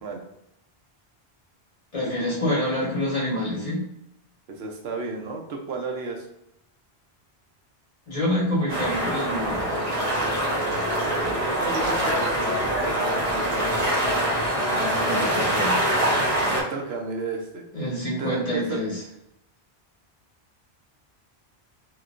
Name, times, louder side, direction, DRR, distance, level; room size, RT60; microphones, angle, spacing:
voice 1, 1.9-3.8 8.1-9.9 14.7-15.8 17.7-19.0, left 1 dB, 35° left, -7 dB, 1.3 m, -27 dB
voice 2, 4.5-6.3 10.9-14.1 16.0-17.6 18.2-18.8, right 4 dB, 80° right, 1 dB, 0.9 m, -33 dB
sound 1, 8.7-16.6, right 1 dB, 35° right, 0.9 m, -24 dB
3.1 x 2.9 x 2.4 m, 0.82 s
omnidirectional pair, 1.1 m